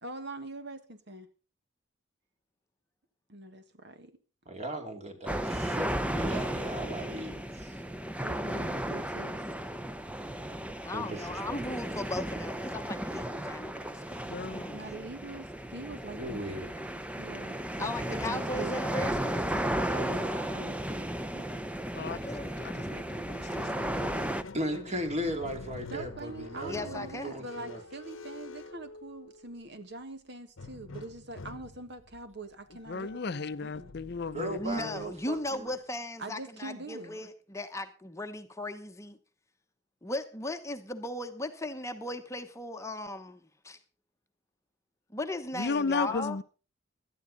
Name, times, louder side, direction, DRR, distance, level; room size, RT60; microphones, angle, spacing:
voice 1, 0.0-1.3 3.3-4.2 8.2-9.4 14.7-16.7 17.2-18.8 19.9-21.7 25.9-33.9 36.2-37.2, right 2 dB, 55° right, 1.6 m, -43 dB
voice 2, 4.5-7.8 10.9-11.6 16.2-16.7 24.5-27.8 34.3-35.7, right 1 dB, 35° right, 2.6 m, -37 dB
sound 1, 5.3-24.4, right 1 dB, 5° right, 0.7 m, -34 dB
voice 3, 10.8-15.1 17.8-20.0 22.1-22.6 26.7-27.4 34.6-39.2 40.0-43.8 45.1-46.4, left 1 dB, 15° left, 1.0 m, -37 dB
voice 4, 14.3-14.9 21.9-23.7 32.9-35.0 45.5-46.4, left 4 dB, 55° left, 0.6 m, -35 dB
Squeak, 23.3-29.6 30.6-35.7, left 3 dB, 75° left, 1.0 m, -47 dB
17.5 x 12.0 x 4.0 m
head